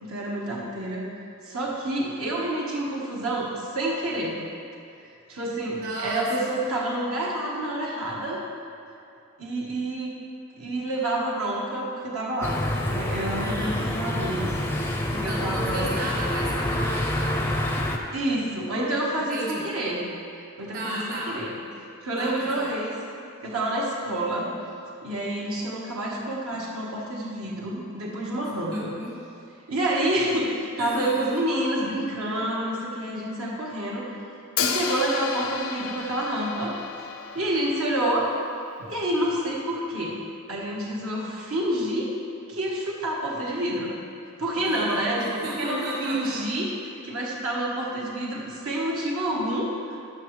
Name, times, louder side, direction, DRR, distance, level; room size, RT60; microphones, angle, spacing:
voice 1, 0.0-1.1 1.4-4.4 5.3-8.4 9.4-10.1 10.6-12.6 12.9-14.5 15.2-15.9 18.1-20.0 20.6-21.6 22.0-23.0 23.4-24.5 25.0-28.9 29.7-34.2 34.6-36.7 37.3-38.3 38.8-40.2 40.5-42.1 42.5-43.9 44.4-50.0, right 1 dB, 75° right, -4 dB, 1.4 m, -28 dB
voice 2, 5.7-6.5 13.4-13.8 15.1-17.8 19.3-19.7 20.7-21.3 22.2-22.8 28.7-29.2 30.8-31.3 44.6-46.3, right 1 dB, 45° right, -5 dB, 1.4 m, -33 dB
sound 1, 12.4-18.0, left 1 dB, 10° left, 0.4 m, -27 dB
Hi-hat, 34.6-38.5, left 7 dB, 70° left, 0.5 m, -32 dB
13.0 x 6.0 x 3.2 m, 2.5 s
head